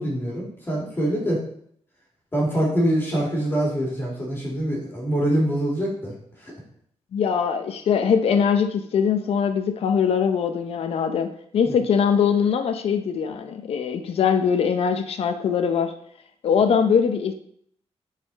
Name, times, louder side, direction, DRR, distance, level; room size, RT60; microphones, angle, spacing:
voice 1, 0.0-1.4 2.3-6.5 11.6-11.8, right 1 dB, 20° left, -4 dB, 2.3 m, -24 dB
voice 2, 7.1-15.9 16.4-17.3, left 7 dB, 60° left, 7 dB, 0.6 m, -22 dB
9.7 x 4.2 x 4.0 m, 0.65 s
wide cardioid pair, 165°, 11 cm